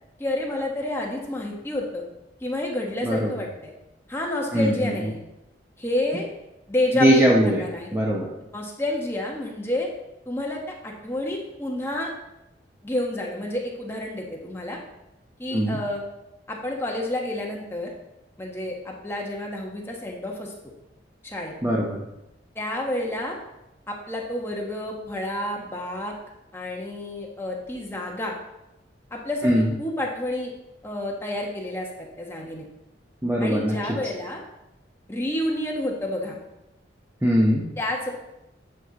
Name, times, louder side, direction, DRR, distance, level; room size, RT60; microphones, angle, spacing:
voice 1, 0.2-2.0 2.4-3.7 4.1-5.2 5.8-6.3 6.7-7.9 8.5-9.9 10.2-12.1 12.8-14.8 15.4-16.0 16.5-17.9 18.4-20.5 21.2-21.5 22.5-23.4 23.9-26.1 26.5-28.3 29.1-30.5 30.8-32.7 33.4-34.4 35.1-36.4 37.8-38.1, left 1 dB, 15° left, -1 dB, 1.3 m, -29 dB
voice 2, 3.0-3.3 4.5-4.9 6.9-7.7 7.9-8.3 15.5-15.8 21.6-22.0 29.4-29.7 33.2-33.8 37.2-37.7, equal, 15° right, -2 dB, 0.8 m, -21 dB
9.3 x 6.5 x 4.1 m, 0.91 s
head